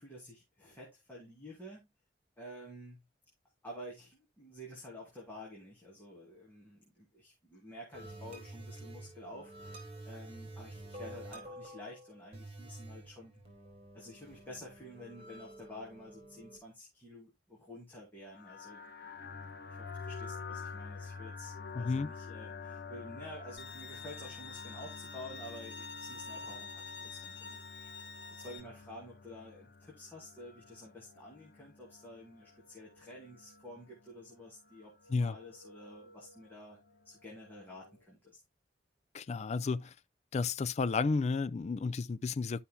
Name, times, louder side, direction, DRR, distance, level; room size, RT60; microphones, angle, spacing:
voice 1, 0.0-1.9 2.4-3.0 3.6-13.3 13.9-18.8 19.2-28.0 28.3-36.8 37.0-38.4, left 1 dB, 10° left, 2.4 m, -50 dB
sound 1, 7.9-16.6, right 1 dB, 35° right, 3.9 m, -49 dB
sound 2, 18.3-38.0, left 5 dB, 60° left, 1.0 m, -49 dB
voice 2, 21.7-22.1 35.1-35.4 39.1-39.9 40.3-42.6, left 4 dB, 35° left, 0.4 m, -32 dB
Bowed string instrument, 23.6-28.6, left 5 dB, 90° left, 2.1 m, -47 dB
12.5 x 5.7 x 2.2 m
head